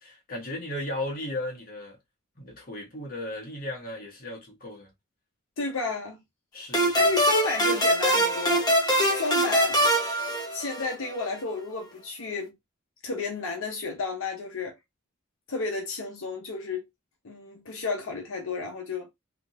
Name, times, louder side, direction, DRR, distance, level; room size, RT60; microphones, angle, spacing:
voice 1, 0.0-2.0 2.4-4.9 6.5-7.1, left 1 dB, 40° left, 1.2 m, -36 dB
voice 2, 5.6-6.2 6.9-8.6 9.1-9.8 10.5-12.6 13.0-14.8 15.5-16.9 17.2-19.1, left 4 dB, 70° left, 0.8 m, -32 dB
sound 1, 6.7-11.1, equal, 20° left, 0.9 m, -23 dB
3.6 x 2.8 x 2.5 m
head